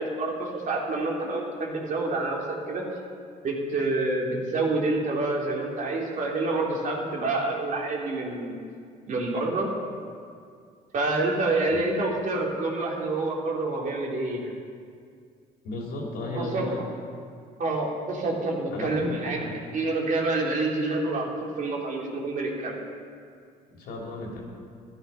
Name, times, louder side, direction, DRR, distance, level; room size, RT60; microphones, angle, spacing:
voice 1, 0.0-2.8 3.4-8.6 9.1-9.7 10.9-14.5 16.3-16.9 17.6-19.4 19.7-22.7, right 2 dB, 50° right, -2 dB, 3.0 m, -27 dB
voice 2, 15.6-16.8 18.7-19.5 23.7-24.4, left 2 dB, 75° left, -1 dB, 3.4 m, -34 dB
13.0 x 12.5 x 5.7 m, 2.2 s
cardioid pair, 110°, 17 cm